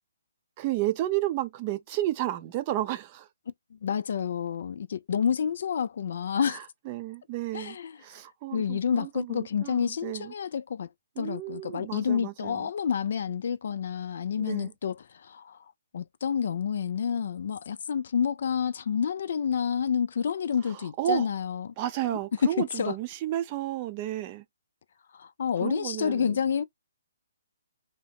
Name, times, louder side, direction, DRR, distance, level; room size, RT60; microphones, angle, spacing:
voice 1, 0.6-3.3 6.5-7.8 8.0-10.3 11.2-12.7 14.4-14.7 21.0-21.3 21.8-24.4 25.6-26.4, right 13 dB, 30° right, 0.5 m, -32 dB
voice 2, 3.7-6.6 7.5-8.0 8.5-10.9 11.2-15.6 15.9-21.7 22.4-22.9 25.1-26.6, left 7 dB, 60° left, 0.3 m, -29 dB
2.8 x 2.1 x 2.8 m
hypercardioid pair, 145°, 0 cm